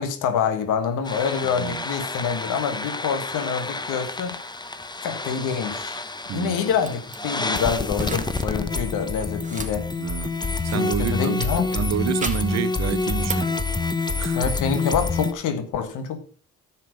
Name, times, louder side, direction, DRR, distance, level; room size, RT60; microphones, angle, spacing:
voice 1, 0.0-4.4 5.0-6.0 6.3-9.9 10.7-11.7 14.3-16.2, left 7 dB, 90° left, 1.6 m, -26 dB
sound 1, 1.1-15.3, left 3 dB, 15° left, 0.9 m, -28 dB
voice 2, 1.4-1.8 6.3-6.8 10.0-10.4 10.6-11.5 11.7-13.6 14.2-14.5, right 11 dB, 60° right, 0.7 m, -29 dB
sound 2, 6.8-7.2 7.9-8.5 8.8-10.9 11.4-12.6 13.0-13.6, right 4 dB, 25° right, 1.9 m, -36 dB
10.0 x 7.6 x 5.0 m
cardioid pair, 90°, 30 cm